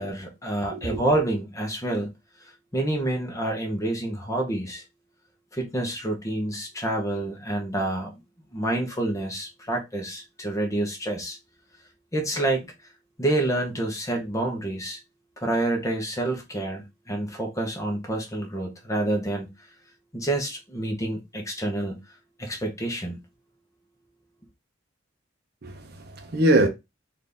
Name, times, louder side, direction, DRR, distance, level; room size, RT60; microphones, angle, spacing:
voice 1, 0.0-2.1 2.7-4.8 5.5-8.1 8.5-11.4 12.1-12.7 13.2-15.0 15.4-19.5 20.1-22.0 22.4-23.2, right 1 dB, 15° left, 1.0 m, -28 dB
voice 2, 0.7-1.0 25.6-26.7, right 1 dB, 55° right, 0.7 m, -23 dB
4.1 x 2.6 x 3.4 m
head